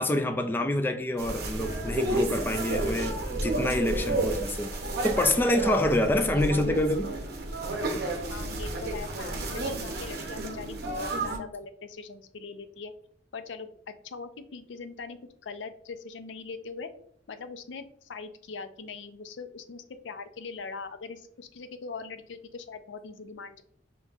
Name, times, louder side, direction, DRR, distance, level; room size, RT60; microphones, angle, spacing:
voice 1, 0.0-4.7 5.0-7.1, left 1 dB, 10° left, 0.3 m, -26 dB
sound 1, 1.2-11.4, right 2 dB, 60° right, 0.7 m, -31 dB
voice 2, 8.3-12.9 13.3-16.9 17.3-23.6, left 4 dB, 85° left, 0.5 m, -41 dB
5.2 x 3.0 x 2.4 m
head